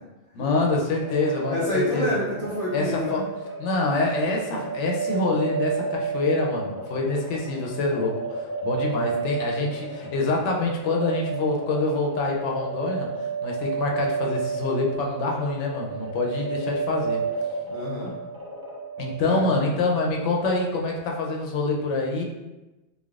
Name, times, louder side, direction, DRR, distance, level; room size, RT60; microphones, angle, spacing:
voice 1, 0.3-2.2 2.7-3.2 3.6-17.2 19.0-22.2, left 2 dB, 90° left, -1 dB, 0.9 m, -26 dB
sound 1, 1.0-19.4, right 4 dB, 35° right, 0.3 m, -32 dB
voice 2, 1.5-3.3 17.6-18.2 19.2-19.5, left 1 dB, 50° left, -7 dB, 0.4 m, -28 dB
3.3 x 2.1 x 2.3 m, 1.1 s
omnidirectional pair, 1.2 m